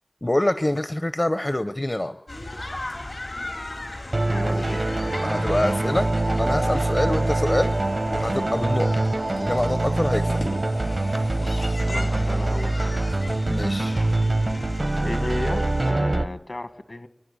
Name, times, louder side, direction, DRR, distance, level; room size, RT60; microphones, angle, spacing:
voice 1, 0.2-2.2 5.2-6.1 6.4-7.7 8.1-8.9 9.3-10.4 13.5-14.0, left 1 dB, 35° left, 11 dB, 0.7 m, -25 dB
sound 1, 2.3-15.9, left 2 dB, 85° left, 3.9 m, -36 dB
sound 2, 4.1-16.3, right 2 dB, 70° right, 1.0 m, -24 dB
voice 2, 4.3-4.8 11.9-13.0 15.0-17.1, left 1 dB, 60° left, 10 dB, 1.6 m, -33 dB
28.0 x 11.0 x 9.9 m, 0.91 s
wide cardioid pair, 50°, 0 cm